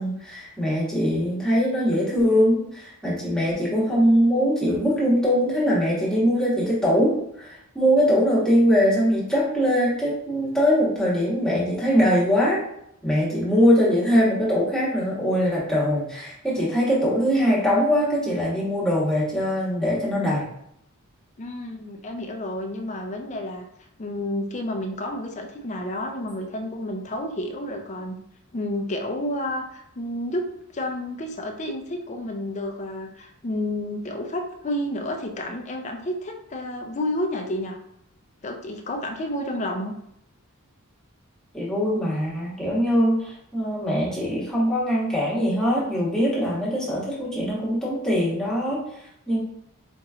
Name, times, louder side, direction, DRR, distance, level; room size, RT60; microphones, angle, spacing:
voice 1, 0.0-12.6 13.0-20.5 41.5-49.4, equal, 5° left, -8 dB, 1.2 m, -22 dB
voice 2, 21.4-23.7 24.0-28.2 28.5-30.4 30.7-37.8 38.4-39.9, left 1 dB, 30° left, 3 dB, 0.5 m, -30 dB
4.4 x 3.0 x 2.4 m, 0.76 s
head